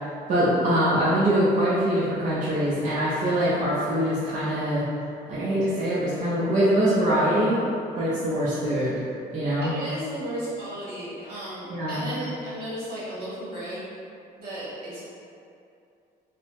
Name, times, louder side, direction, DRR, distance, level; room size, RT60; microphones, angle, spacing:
voice 1, 0.3-4.8 5.3-7.6 8.0-9.0 9.3-9.7 11.7-12.0, right 1 dB, 45° right, -9 dB, 0.6 m, -23 dB
voice 2, 9.6-13.8 14.4-15.0, right 1 dB, 70° right, -9 dB, 1.2 m, -34 dB
3.2 x 2.0 x 2.9 m, 2.5 s
cardioid pair, 110°, 17 cm